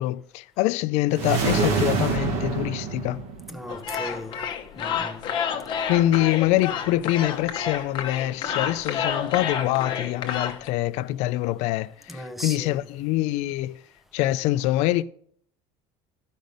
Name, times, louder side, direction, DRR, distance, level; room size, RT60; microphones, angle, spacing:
voice 1, 0.0-3.2 5.9-13.8 14.1-15.0, left 15 dB, 60° left, 0.4 m, -25 dB
sound 1, 1.1-3.7, right 5 dB, 60° right, 1.4 m, -26 dB
voice 2, 3.5-4.4 4.8-5.3 12.1-12.9, left 1 dB, ahead, 0.6 m, -37 dB
sound 2, 3.7-10.7, left 7 dB, 40° left, 0.9 m, -30 dB
12.0 x 5.2 x 5.2 m
cardioid pair, 160°, 13 cm